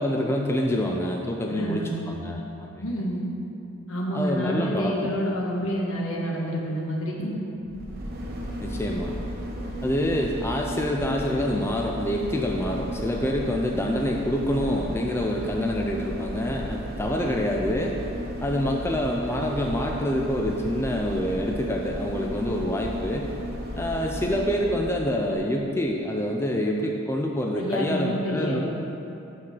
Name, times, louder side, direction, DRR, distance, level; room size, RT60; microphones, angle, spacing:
voice 1, 0.0-2.7 4.1-5.1 8.6-9.1 9.8-18.0 18.4-23.3 23.8-28.6, left 1 dB, 10° left, 0 dB, 0.4 m, -26 dB
voice 2, 1.5-1.9 2.8-3.2 3.9-7.4 27.5-28.6, equal, 75° left, -2 dB, 1.4 m, -28 dB
sound 1, 7.6-25.0 25.3-25.4, equal, 45° right, 0.9 m, -34 dB
6.1 x 5.9 x 6.5 m, 2.8 s
head